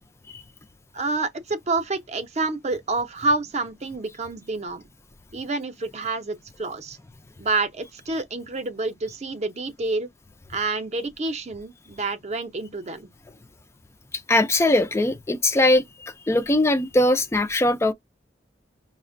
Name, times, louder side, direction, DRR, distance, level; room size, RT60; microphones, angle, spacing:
voice 1, 0.9-4.9 5.3-7.0 7.4-10.1 10.5-13.1, right 3 dB, 40° right, 0.6 m, -28 dB
voice 2, 14.3-17.9, left 1 dB, 15° left, 0.3 m, -21 dB
5.6 x 2.1 x 2.5 m
head